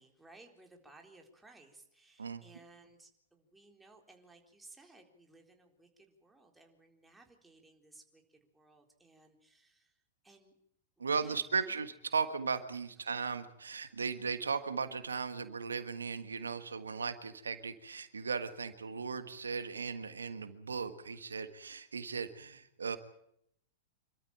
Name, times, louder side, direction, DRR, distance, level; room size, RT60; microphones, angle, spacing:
voice 1, 0.0-10.0 10.2-10.5 11.0-11.8 13.0-13.2, right 2 dB, 5° right, 2 dB, 3.9 m, -60 dB
voice 2, 11.0-23.0, right 5 dB, 90° right, 10 dB, 1.5 m, -37 dB
26.5 x 13.5 x 8.9 m, 0.74 s
hypercardioid pair, 110°, 0 cm